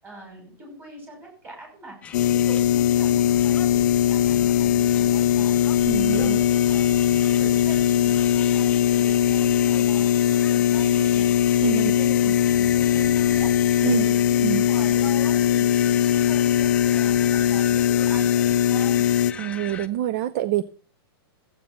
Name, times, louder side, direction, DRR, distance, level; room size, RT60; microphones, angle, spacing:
voice 1, 0.0-2.0 2.3-5.7 6.2-6.9 7.2-12.2 12.5-19.1, right 1 dB, 15° right, 1 dB, 5.8 m, -41 dB
sound 1, 2.0-19.9, left 7 dB, 10° left, 0.6 m, -38 dB
sound 2, 2.1-19.3, left 11 dB, 45° left, 0.6 m, -20 dB
voice 2, 5.9-6.4 11.6-11.9 13.8-14.0 14.4-14.6 19.4-20.6, right 13 dB, 30° right, 16 dB, 0.4 m, -26 dB
14.5 x 8.5 x 4.2 m, 0.42 s
supercardioid pair, 165°, 13 cm